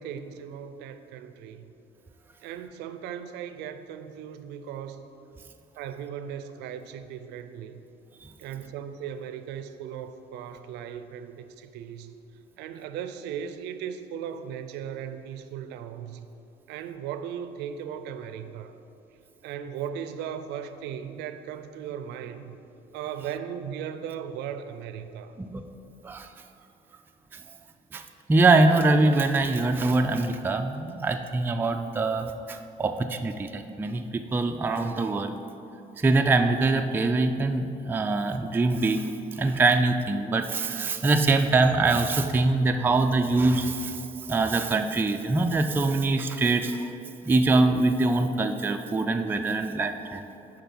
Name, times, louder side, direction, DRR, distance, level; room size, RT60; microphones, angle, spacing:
voice 1, 0.0-1.7 2.4-5.1 5.8-7.8 8.4-12.1 12.6-16.3 16.7-18.8 19.4-22.6 22.9-25.3, right 8 dB, 90° right, 10 dB, 0.5 m, -37 dB
voice 2, 28.3-34.0 34.3-35.4 36.0-39.1 39.3-44.0 44.3-46.9 47.2-50.2, right 3 dB, 10° right, 5 dB, 0.3 m, -23 dB
6.7 x 5.1 x 6.0 m, 2.8 s
cardioid pair, 110°, 17 cm